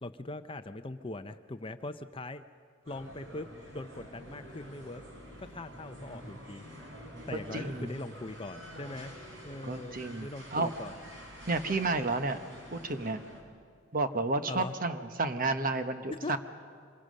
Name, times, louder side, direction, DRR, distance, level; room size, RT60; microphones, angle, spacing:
voice 1, 0.0-2.4 2.9-3.5 3.7-5.0 5.4-6.7 7.3-9.2 9.4-11.0 14.5-14.7 16.2-16.4, left 2 dB, 25° left, 10 dB, 0.6 m, -41 dB
sound 1, 2.8-13.4, equal, 55° right, 4.9 m, -48 dB
voice 2, 7.5-7.9 9.6-10.7 11.5-12.4 12.7-13.2 13.9-16.4, right 3 dB, 40° right, 9 dB, 1.1 m, -31 dB
26.0 x 22.0 x 6.5 m, 2.2 s
head